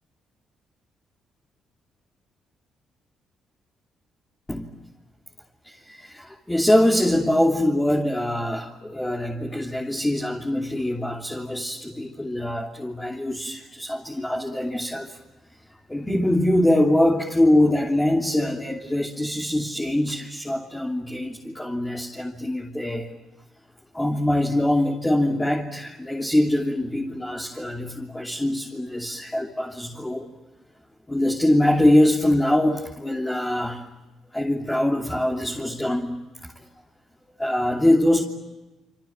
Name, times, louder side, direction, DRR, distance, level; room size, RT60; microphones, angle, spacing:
voice 1, 5.6-15.2 15.9-23.1 23.9-30.3 31.1-33.9 34.3-36.1 36.4-36.5 37.4-38.2, left 1 dB, 10° left, -1 dB, 3.1 m, -23 dB
28.0 x 26.5 x 7.4 m, 1.1 s
cardioid pair, 90°, 0 cm